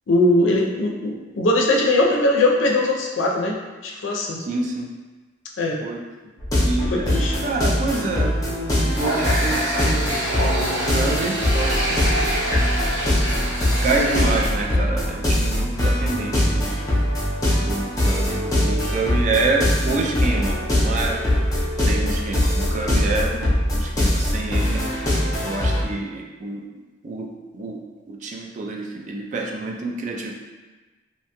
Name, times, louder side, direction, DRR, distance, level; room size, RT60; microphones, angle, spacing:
voice 1, 0.1-3.6 3.8-4.4 5.6-5.8 6.9-7.4, left 2 dB, 80° left, -1 dB, 0.5 m, -20 dB
voice 2, 4.4-4.9 5.8-6.0 6.6-7.1 7.4-12.2 13.8-16.8 17.6-21.2 21.9-26.6 27.0-27.3 27.5-27.8 28.1-30.3, right 3 dB, 40° right, 0 dB, 0.3 m, -27 dB
sound 1, 6.4-25.8, left 1 dB, 20° left, 0.6 m, -22 dB
Water tap faucet, 8.8-14.6, equal, 80° right, 0.9 m, -26 dB
2.7 x 2.2 x 2.8 m, 1.3 s
head